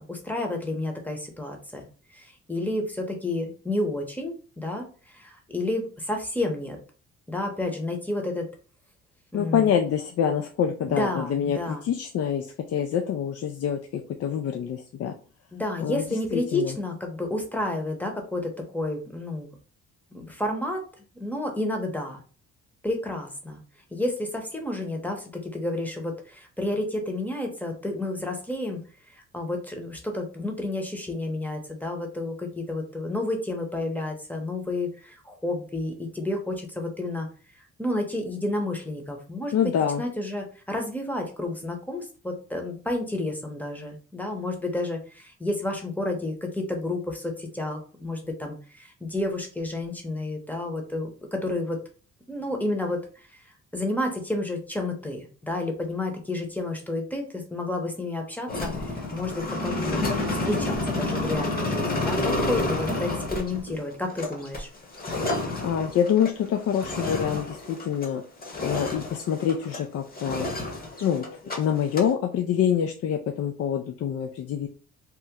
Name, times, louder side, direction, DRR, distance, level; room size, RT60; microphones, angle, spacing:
voice 1, 0.0-1.9 2.1-6.8 7.3-8.5 9.3-9.7 10.9-11.8 15.5-19.5 20.1-20.8 21.2-22.2 22.8-23.6 23.9-28.8 29.1-37.3 37.8-39.6 40.0-51.8 52.3-53.0 53.7-60.0 60.4-64.7, left 2 dB, 5° left, 3 dB, 0.8 m, -30 dB
voice 2, 9.3-15.2 15.8-16.8 39.5-40.0 65.6-68.2 68.6-70.5 71.0-74.7, left 8 dB, 55° left, 4 dB, 0.4 m, -26 dB
sound 1, 58.5-68.2 68.4-69.8 70.1-71.6 71.8-72.1, left 2 dB, 30° left, 1.0 m, -29 dB
2.9 x 2.0 x 3.5 m, 0.39 s
cardioid pair, 90°, 30 cm